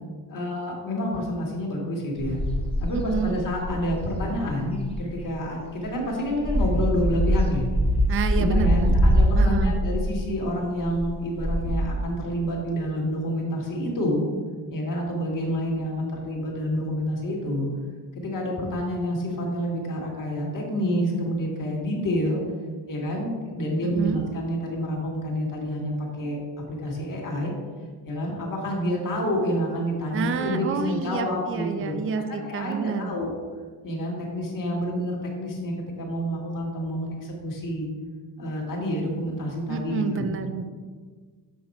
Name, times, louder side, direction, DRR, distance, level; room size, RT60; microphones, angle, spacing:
voice 1, 0.3-2.4 2.8-7.7 8.4-14.3 14.7-17.7 18.2-22.4 22.9-27.5 28.1-32.0 32.3-33.3 33.8-37.9 38.4-40.2, equal, 50° left, -2 dB, 1.9 m, -28 dB
sound 1, 2.2-5.3 5.8-10.4 10.8-11.8, equal, 15° left, 0.9 m, -23 dB
voice 2, 2.9-3.4 8.1-8.9 9.4-9.7 23.8-24.2 30.1-33.1 39.7-40.6, right 6 dB, 30° right, 8 dB, 0.4 m, -29 dB
7.3 x 5.9 x 4.2 m, 1.5 s
wide cardioid pair, 140°, 41 cm